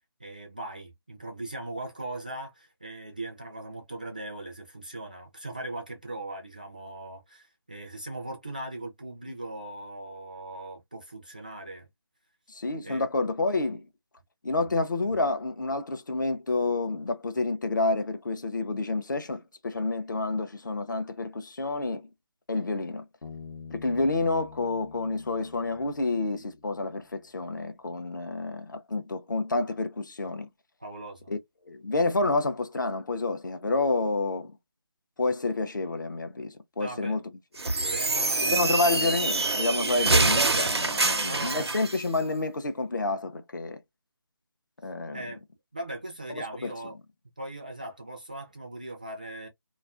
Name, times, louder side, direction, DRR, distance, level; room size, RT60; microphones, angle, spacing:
voice 1, 0.2-11.9 12.8-13.1 30.8-31.3 36.8-37.2 37.9-39.0 41.0-41.8 45.1-45.4 45.7-47.0 47.4-49.5, right 2 dB, 20° right, 0.3 m, -39 dB
voice 2, 12.5-13.8 14.4-22.1 22.5-23.0 23.7-30.5 31.3-31.4 31.7-34.5 35.2-37.2 38.4-43.8 44.8-45.2 46.3-46.7, left 3 dB, 50° left, 0.5 m, -29 dB
Bass guitar, 23.2-26.7, left 5 dB, 70° left, 1.0 m, -46 dB
sound 1, 37.6-42.0, right 3 dB, 80° right, 0.6 m, -25 dB
2.4 x 2.3 x 2.4 m
figure-of-eight pair, 160°, 13 cm